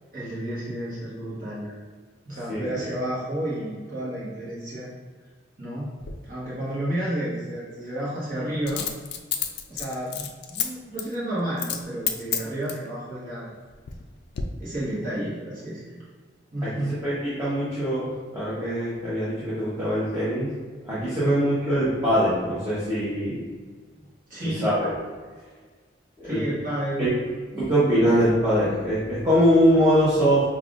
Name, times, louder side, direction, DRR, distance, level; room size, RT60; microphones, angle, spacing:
voice 1, 0.1-1.8 2.2-4.9 5.6-5.9 6.3-8.8 9.7-13.5 14.6-16.0 16.5-17.0 21.2-21.3 24.0-24.7 26.2-27.1 27.5-27.7, right 1 dB, 45° right, -9 dB, 1.1 m, -31 dB
Coin (dropping), 6.0-6.2 8.7-10.7 11.0-11.2 11.6-11.8 12.1-12.9 13.5-14.0 14.3-14.4, left 9 dB, 55° left, 0.3 m, -29 dB
voice 2, 16.6-20.5 20.8-23.4 24.6-24.9 26.2-26.4 27.0-27.1 27.6-30.4, equal, 15° right, -13 dB, 0.9 m, -22 dB
5.6 x 2.4 x 2.4 m, 1.5 s
head